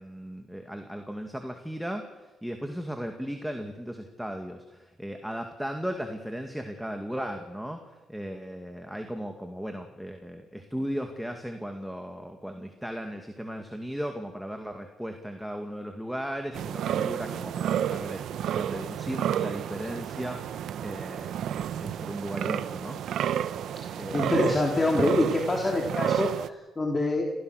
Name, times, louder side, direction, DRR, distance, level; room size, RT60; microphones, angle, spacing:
voice 1, 0.0-7.8 8.1-20.4 20.8-21.4 21.8-23.0 24.0-24.5, equal, ahead, 4 dB, 2.2 m, -36 dB
sound 1, 16.5-26.5, right 10 dB, 75° right, 0.9 m, -31 dB
voice 2, 23.9-27.3, left 2 dB, 25° left, 0 dB, 3.4 m, -26 dB
28.0 x 16.0 x 6.5 m, 1.2 s
cardioid pair, 90°, 0 cm